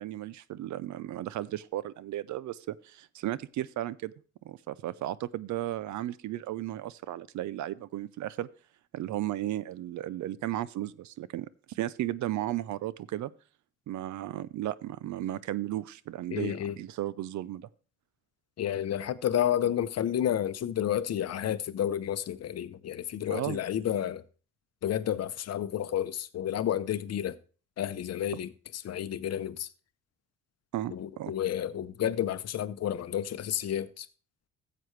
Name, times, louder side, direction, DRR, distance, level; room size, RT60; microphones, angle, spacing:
voice 1, 0.0-4.1 4.4-8.5 8.9-13.3 13.9-17.7 23.3-23.6 30.7-31.3, right 14 dB, 70° right, 0.6 m, -35 dB
voice 2, 16.3-16.8 18.6-24.2 24.8-27.4 27.8-29.7 30.9-34.1, left 10 dB, 55° left, 0.8 m, -31 dB
14.0 x 7.8 x 3.2 m
cardioid pair, 90°, 30 cm